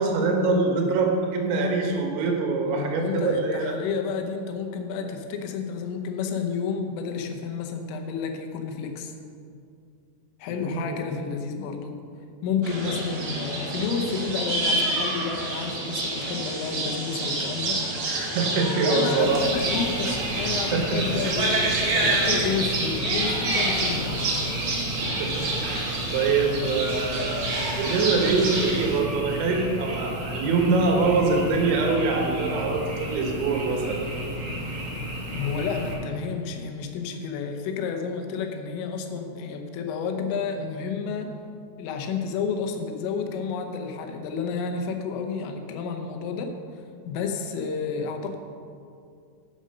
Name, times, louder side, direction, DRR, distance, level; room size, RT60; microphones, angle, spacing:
voice 1, 0.0-3.7 10.5-11.0 12.9-13.0 18.1-19.4 20.7-21.1 25.2-27.4 27.7-34.1, right 3 dB, 75° right, 1 dB, 3.4 m, -24 dB
voice 2, 2.7-9.2 10.4-12.0 12.4-17.8 18.8-24.4 35.3-41.3 41.8-46.5 47.1-48.4, left 5 dB, 85° left, 4 dB, 3.6 m, -30 dB
sound 1, 12.6-29.0, right 2 dB, 55° right, 1.9 m, -28 dB
Frog, 19.2-35.9, equal, 35° right, 2.7 m, -33 dB
9.1 x 8.0 x 6.5 m, 2.4 s
omnidirectional pair, 5.7 m